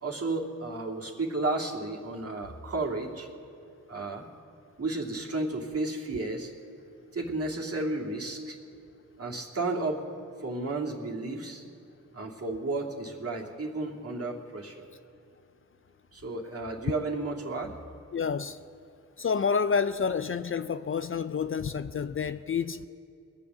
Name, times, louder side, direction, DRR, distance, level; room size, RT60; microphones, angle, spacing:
voice 1, 0.0-3.3 3.9-4.2 4.8-6.5 7.1-8.6 9.2-10.0 10.4-11.6 12.1-14.8 16.1-17.7, right 2 dB, 45° right, 2.4 m, -32 dB
voice 2, 18.1-18.6 19.2-22.9, left 6 dB, 40° left, 0.5 m, -29 dB
21.0 x 7.2 x 6.8 m
supercardioid pair, 45°, 33 cm